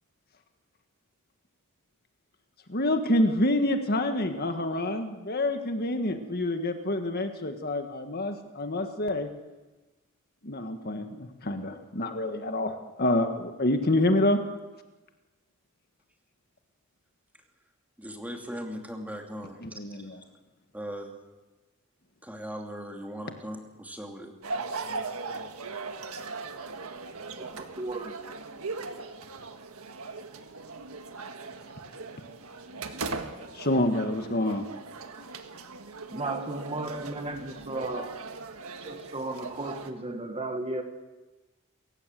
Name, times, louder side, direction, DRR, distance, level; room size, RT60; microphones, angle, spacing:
voice 1, 2.7-9.3 10.4-14.4 19.6-20.2 33.5-34.7, left 1 dB, 45° left, 6 dB, 1.7 m, -27 dB
voice 2, 18.0-19.8 20.7-21.1 22.2-24.3, equal, 5° right, 2 dB, 2.7 m, -39 dB
sound 1, 24.4-39.9, right 3 dB, 75° right, 1.6 m, -39 dB
voice 3, 27.4-28.2 36.1-38.2 38.8-40.8, right 2 dB, 25° right, 6 dB, 1.6 m, -34 dB
28.0 x 16.0 x 7.7 m, 1.1 s
head